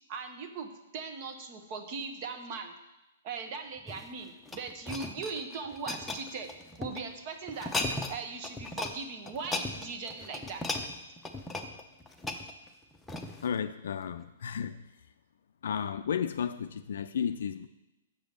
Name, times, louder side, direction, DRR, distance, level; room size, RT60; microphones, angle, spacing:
voice 1, 0.1-2.7 3.2-6.5 6.8-10.8, right 4 dB, 40° right, 6 dB, 1.1 m, -39 dB
sound 1, 3.8-7.0 7.5-8.2 8.4-9.0 9.3-13.5 14.1-14.2, left 2 dB, 5° left, 0.7 m, -37 dB
voice 2, 13.4-14.8 15.6-17.7, left 7 dB, 70° left, 9 dB, 0.3 m, -33 dB
6.8 x 5.1 x 6.6 m, 0.98 s
hypercardioid pair, 135°, 0 cm